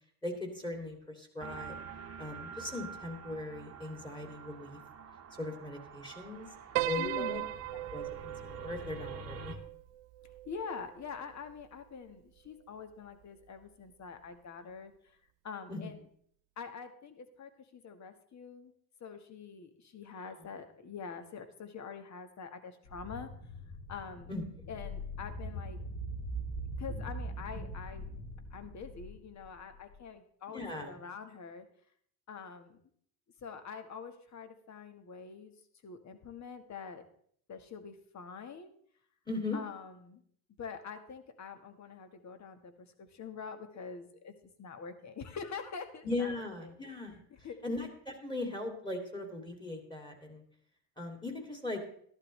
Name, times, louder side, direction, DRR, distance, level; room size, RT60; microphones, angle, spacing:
voice 1, 0.2-1.8 2.2-4.8 5.4-6.5 6.8-7.4 7.7-9.5 15.7-15.9 24.3-24.5 30.5-31.0 39.3-39.6 46.0-47.2 47.6-50.4 51.0-51.8, left 2 dB, 10° left, 2 dB, 2.6 m, -39 dB
sound 1, 1.4-9.6, right 5 dB, 30° right, 1.3 m, -47 dB
Piano, 6.8-11.2, right 17 dB, 65° right, 0.6 m, -38 dB
voice 2, 7.0-7.4 10.4-14.9 15.4-16.0 16.6-18.7 19.0-23.3 23.9-24.3 24.7-25.8 26.8-28.0 28.5-31.7 32.3-32.8 33.4-35.5 35.8-37.0 37.5-38.7 39.5-40.2 40.6-42.7 43.0-44.3 44.6-46.9 47.4-47.5, left 6 dB, 35° left, 8 dB, 1.5 m, -45 dB
sound 2, 22.8-30.0, right 1 dB, 60° left, 3.3 m, -41 dB
14.0 x 11.5 x 3.2 m, 0.63 s
supercardioid pair, 105°, 48 cm